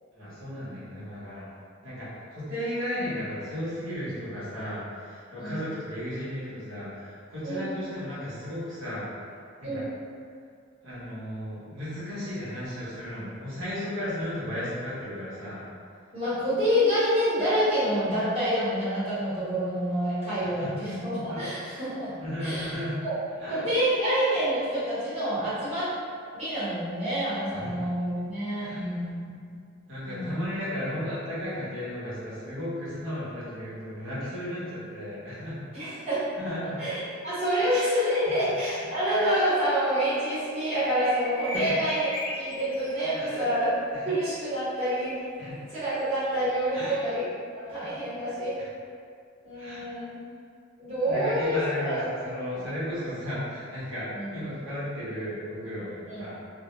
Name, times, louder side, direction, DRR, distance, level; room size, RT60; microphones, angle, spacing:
voice 1, 0.1-1.5 1.8-9.0 9.6-9.8 10.8-15.7 20.4-20.7 21.3-21.4 22.2-23.0 23.4-23.7 27.5-27.8 28.6-28.9 29.9-35.6 36.4-36.8 38.3-38.4 41.5-41.7 43.2-43.5 43.9-44.1 45.4-45.6 46.7-47.0 47.7-47.8 48.6-48.7 49.5-49.9 51.0-56.4, left 1 dB, 70° right, -11 dB, 1.0 m, -34 dB
voice 2, 16.1-22.1 22.4-22.7 23.0-23.1 23.5-25.9 26.3-29.2 30.1-30.4 35.7-36.2 36.6-37.0 37.2-42.1 42.4-43.8 44.0-45.2 45.7-47.2 47.5-48.5 49.4-50.2 50.8-52.0 52.5-52.6 54.1-54.4 56.1-56.2, equal, 30° right, -13 dB, 1.0 m, -27 dB
sound 1, 40.7-42.9 46.2-46.7, left 1 dB, 25° left, 0.4 m, -36 dB
2.2 x 2.1 x 2.9 m, 2.2 s
head